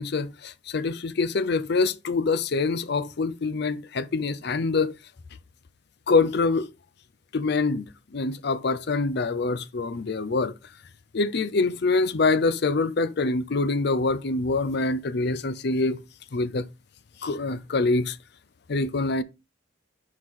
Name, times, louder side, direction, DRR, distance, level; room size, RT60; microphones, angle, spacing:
voice 1, 0.0-4.9 6.1-6.7 7.3-7.9 8.1-10.5 11.1-16.0 16.3-16.7 17.2-18.2 18.7-19.2, left 3 dB, 55° left, 0.5 m, -25 dB
6.0 x 4.8 x 3.7 m
head